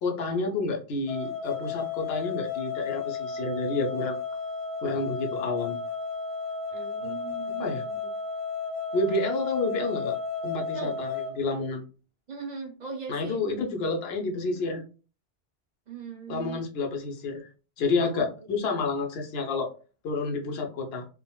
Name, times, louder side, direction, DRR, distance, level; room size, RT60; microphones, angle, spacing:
voice 1, 0.0-4.2 4.8-5.8 7.0-7.1 7.6-7.8 8.9-10.2 10.4-11.8 13.1-14.8 16.3-17.5 17.8-19.7 20.0-21.1, left 3 dB, 75° left, 3 dB, 0.9 m, -29 dB
sound 1, 1.1-11.3, left 5 dB, 55° left, 1.7 m, -33 dB
voice 2, 6.7-8.1 10.7-11.0 12.3-13.7 15.9-16.6 18.0-18.5, right 5 dB, 50° right, 1 dB, 0.7 m, -40 dB
3.7 x 2.1 x 2.2 m, 0.36 s
omnidirectional pair, 1.1 m